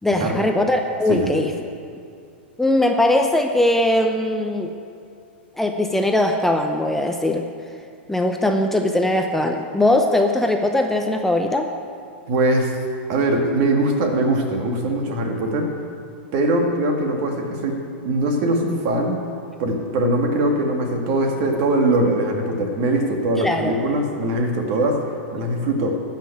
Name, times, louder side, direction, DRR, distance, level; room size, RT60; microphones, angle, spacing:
voice 1, 0.0-1.5 2.6-4.7 5.6-7.5 8.1-11.7 23.4-23.7, left 1 dB, 5° left, 4 dB, 0.6 m, -20 dB
voice 2, 12.3-12.7 13.1-15.7 16.3-19.2 19.6-25.0 25.3-26.0, right 1 dB, 50° right, 2 dB, 2.1 m, -21 dB
13.0 x 5.9 x 8.6 m, 2.3 s
hypercardioid pair, 120°, 6 cm